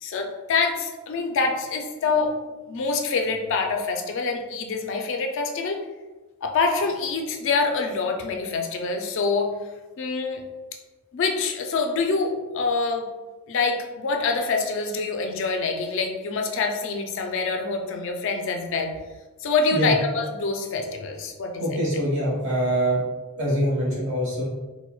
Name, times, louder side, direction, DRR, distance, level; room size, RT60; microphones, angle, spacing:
voice 1, 0.0-2.4 2.7-5.8 6.4-9.5 10.0-10.4 11.1-13.0 13.5-18.9 19.4-21.6, left 4 dB, 55° left, 4 dB, 0.4 m, -25 dB
voice 2, 21.6-23.0 23.4-24.4, right 1 dB, 55° right, -5 dB, 1.3 m, -24 dB
4.4 x 2.1 x 2.2 m, 1.2 s
head